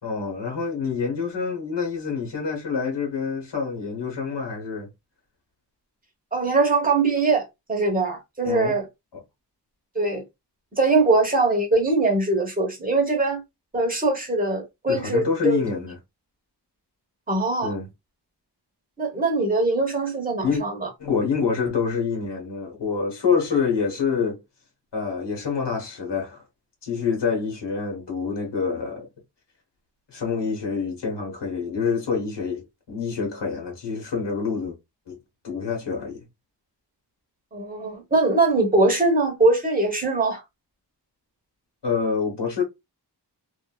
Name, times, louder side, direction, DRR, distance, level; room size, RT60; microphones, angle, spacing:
voice 1, 0.0-4.9 8.4-8.8 9.1-9.2 14.9-16.0 17.6-17.9 20.4-20.6 21.0-24.4 24.9-26.4 26.8-29.1 30.1-34.8 35.1-35.2 35.4-36.2 41.8-42.6, left 5 dB, 80° left, 1.4 m, -26 dB
voice 2, 6.3-8.8 9.9-10.2 10.7-13.4 13.7-15.6 17.3-17.7 19.0-20.9 37.5-40.4, right 3 dB, 20° right, 1.1 m, -22 dB
2.6 x 2.5 x 2.3 m
wide cardioid pair, 100°, 42 cm